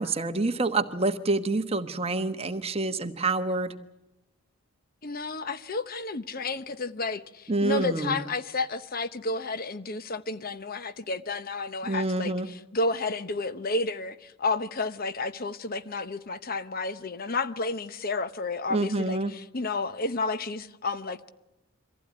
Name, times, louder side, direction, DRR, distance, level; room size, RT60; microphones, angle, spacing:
voice 1, 0.0-3.7 7.5-8.2 11.8-12.5 18.7-19.3, right 2 dB, 30° right, 1.1 m, -27 dB
voice 2, 5.0-21.3, left 3 dB, 45° left, 0.9 m, -31 dB
24.5 x 15.5 x 9.7 m
head